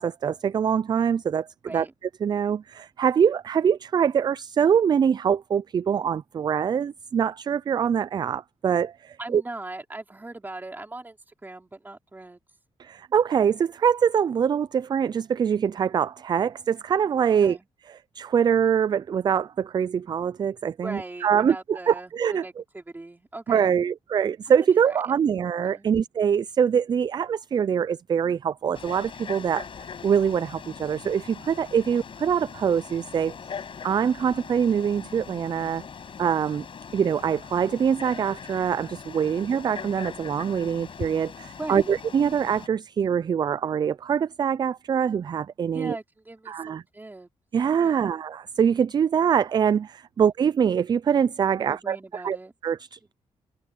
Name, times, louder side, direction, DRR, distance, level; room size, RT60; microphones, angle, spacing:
voice 1, 0.0-1.5 1.7-1.9 2.2-9.4 12.8-17.6 18.2-22.4 23.5-33.3 33.8-35.8 36.2-36.7 36.9-46.0 46.5-46.8 47.5-52.4 52.6-53.1, right 7 dB, 40° right, 0.3 m, -24 dB
voice 2, 9.2-12.4 17.4-17.7 20.8-23.8 24.9-25.2 25.6-25.9 39.3-39.4 41.6-42.0 45.7-47.3 47.8-48.1 51.7-52.5, right 2 dB, 15° right, 3.8 m, -39 dB
Frog, 28.7-42.7, left 6 dB, 50° left, 5.7 m, -41 dB
cardioid pair, 120°, 11 cm